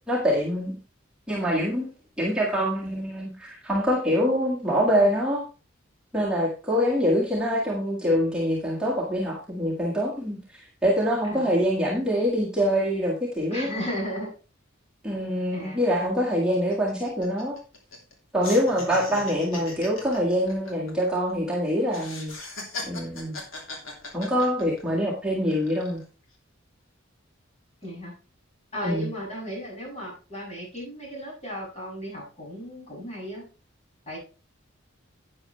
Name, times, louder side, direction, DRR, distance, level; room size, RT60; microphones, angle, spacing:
voice 1, 0.1-0.7 1.3-1.8 2.2-5.4 6.1-13.7 15.0-17.6 18.3-22.3 22.8-23.4 24.1-26.0 28.8-29.1, equal, 5° right, -6 dB, 1.7 m, -25 dB
voice 2, 13.5-14.3 15.5-15.8 27.8-28.1 28.7-33.4 34.1-34.2, equal, 30° left, -4 dB, 6.6 m, -35 dB
sound 1, 15.6-15.7 16.0-16.2 16.5-18.1 18.4-21.5 21.9-25.0 25.5-26.0, left 2 dB, 80° left, 3.2 m, -39 dB
11.0 x 8.8 x 3.2 m, 0.33 s
head